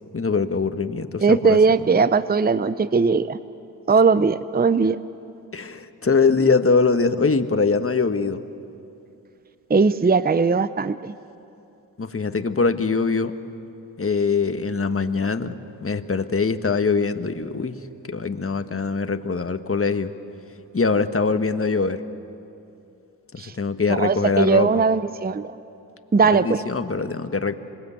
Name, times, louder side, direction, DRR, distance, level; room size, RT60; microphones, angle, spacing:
voice 1, 0.1-1.6 1.9-2.0 5.5-8.4 12.0-13.3 14.0-17.7 18.1-20.1 20.7-22.0 23.3-24.7 26.2-27.6, left 4 dB, 30° left, 8 dB, 1.5 m, -23 dB
voice 2, 1.2-3.4 3.9-5.0 9.7-11.1 23.4-23.5 23.9-25.5 26.1-26.6, right 4 dB, 20° right, 14 dB, 0.7 m, -19 dB
26.5 x 22.0 x 8.4 m, 2.8 s
supercardioid pair, 45°, 43 cm